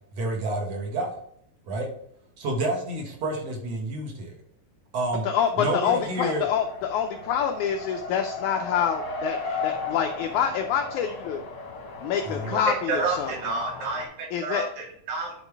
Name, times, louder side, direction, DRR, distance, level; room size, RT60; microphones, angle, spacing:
voice 1, 0.2-1.2 1.7-1.9 2.4-4.3 4.9-5.3 5.6-6.5 12.2-12.5, right 1 dB, 50° right, 1 dB, 2.5 m, -29 dB
voice 2, 5.2-11.4 12.0-13.5 14.3-14.6, left 8 dB, 90° left, 5 dB, 1.7 m, -27 dB
Race car auto racing, 5.9-14.0, left 4 dB, 55° left, 1.4 m, -36 dB
voice 3, 12.9-15.3, right 3 dB, 75° right, -2 dB, 4.1 m, -30 dB
11.0 x 4.5 x 3.5 m, 0.67 s
omnidirectional pair, 4.1 m